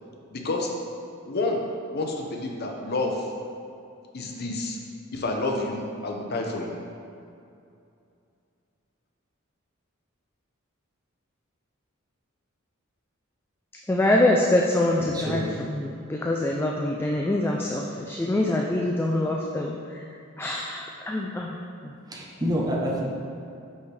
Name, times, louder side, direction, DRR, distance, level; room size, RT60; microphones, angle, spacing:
voice 1, 0.3-0.7 1.3-1.6 1.9-3.3 4.1-4.8 5.1-6.8, left 2 dB, 50° left, 1 dB, 0.7 m, -29 dB
voice 2, 13.9-20.0 20.4-21.6 21.8-22.0, left 1 dB, 10° left, -1 dB, 0.3 m, -25 dB
voice 3, 15.1-15.4 22.1-23.0, equal, 20° right, -3 dB, 0.7 m, -27 dB
6.0 x 5.4 x 3.3 m, 2.5 s
head